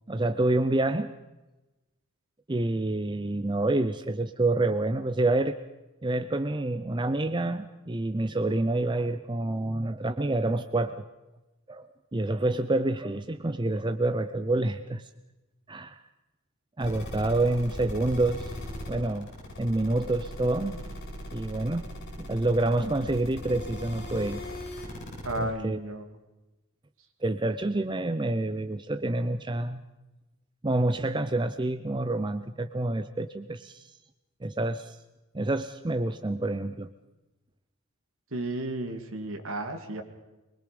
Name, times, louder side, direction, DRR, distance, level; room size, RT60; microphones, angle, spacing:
voice 1, 0.1-1.1 2.5-5.6 6.0-11.0 11.7-15.0 15.7-16.0 16.8-18.5 18.9-19.3 19.6-20.8 21.3-21.9 22.2-24.4 25.4-25.8 27.2-29.8 30.6-33.9 34.4-35.0 35.3-36.9, right 2 dB, 20° right, 10 dB, 0.6 m, -28 dB
sound 1, 16.8-25.4, left 1 dB, 50° left, 7.3 m, -39 dB
voice 2, 25.2-26.1 38.3-40.0, right 1 dB, 65° right, 6 dB, 2.4 m, -33 dB
23.5 x 21.5 x 5.2 m, 1.0 s
head